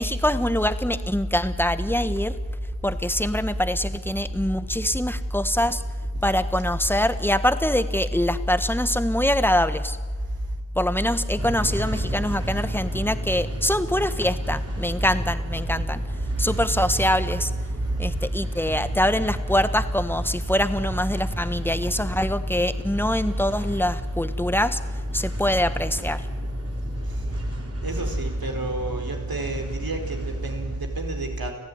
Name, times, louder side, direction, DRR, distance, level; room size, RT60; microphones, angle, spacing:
voice 1, 0.0-2.4 2.8-5.8 6.2-10.0 10.7-16.0 16.4-17.5 18.0-24.8 25.1-26.3, left 1 dB, 5° left, 11 dB, 1.5 m, -23 dB
sound 1, 11.4-30.8, right 2 dB, 40° right, 4.3 m, -36 dB
voice 2, 27.8-31.5, right 2 dB, 70° right, 4 dB, 4.4 m, -30 dB
30.0 x 15.0 x 9.8 m, 1.5 s
cardioid pair, 50°, 37 cm